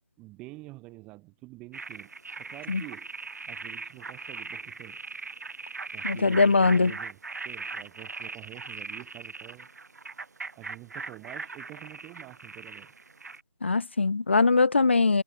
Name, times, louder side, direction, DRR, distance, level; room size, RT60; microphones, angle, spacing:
voice 1, 0.2-3.1 3.4-5.0 5.9-7.2 7.4-9.7 10.5-13.0, right 21 dB, 5° right, 1.4 m, -47 dB
sound 1, 1.7-13.4, right 4 dB, 35° right, 2.0 m, -40 dB
voice 2, 6.0-6.9 13.6-15.2, left 4 dB, 25° left, 0.8 m, -21 dB
figure-of-eight pair, 160°, 15 cm